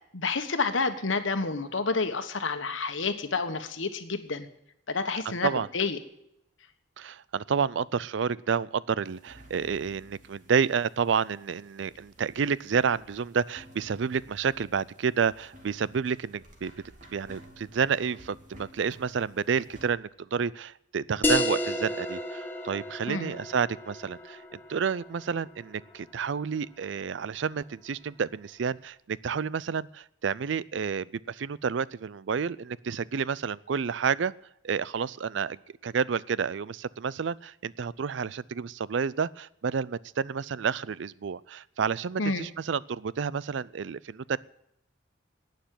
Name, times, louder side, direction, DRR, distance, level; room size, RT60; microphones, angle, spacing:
voice 1, 0.1-4.5 4.9-6.0 23.1-23.3 42.2-42.5, left 4 dB, 80° left, 9 dB, 1.4 m, -29 dB
voice 2, 7.0-16.7 17.1-24.4 24.7-34.3 34.6-44.4, right 6 dB, 70° right, 21 dB, 0.4 m, -30 dB
sound 1, 9.0-19.9, right 1 dB, 40° right, 2.7 m, -54 dB
sound 2, 21.2-26.3, left 1 dB, 10° left, 1.1 m, -32 dB
11.5 x 9.3 x 9.1 m, 0.78 s
head